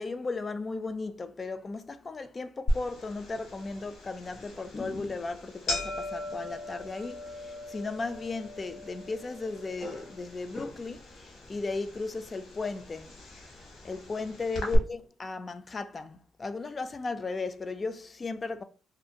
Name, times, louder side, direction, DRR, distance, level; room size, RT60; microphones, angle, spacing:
voice 1, 0.0-13.1 13.8-18.6, left 3 dB, 30° left, 0.3 m, -36 dB
sound 1, 2.7-14.8, left 1 dB, 65° left, 1.0 m, -38 dB
2.5 x 2.3 x 2.7 m
cardioid pair, 90°, 0 cm